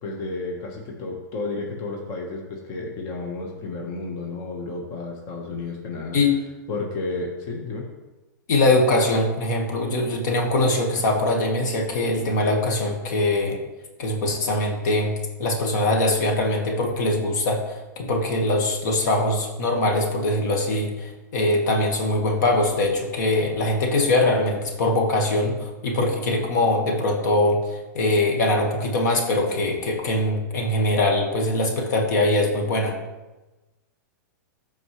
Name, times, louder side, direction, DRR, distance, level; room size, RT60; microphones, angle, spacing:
voice 1, 0.0-6.2 6.7-7.8, left 3 dB, 40° left, 0 dB, 1.4 m, -32 dB
voice 2, 8.5-13.6 14.0-33.0, left 2 dB, 65° left, 1 dB, 1.7 m, -22 dB
13.0 x 4.5 x 3.3 m, 1.1 s
hypercardioid pair, 125°, 10 cm